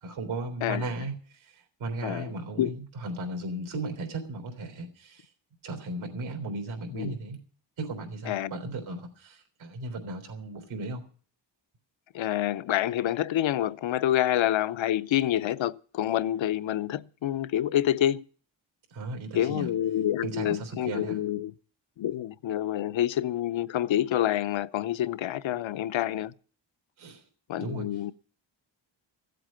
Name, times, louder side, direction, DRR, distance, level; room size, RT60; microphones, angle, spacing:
voice 1, 0.0-5.3 5.6-7.4 7.8-11.0 18.9-19.7 20.2-21.2 27.0-27.2 27.6-28.0, right 2 dB, 80° right, 3.7 m, -36 dB
voice 2, 8.3-8.6 12.1-18.2 19.3-21.5 22.0-26.3 27.5-28.1, left 12 dB, 75° left, 0.7 m, -27 dB
15.5 x 7.9 x 8.8 m
wide cardioid pair, 110°, 47 cm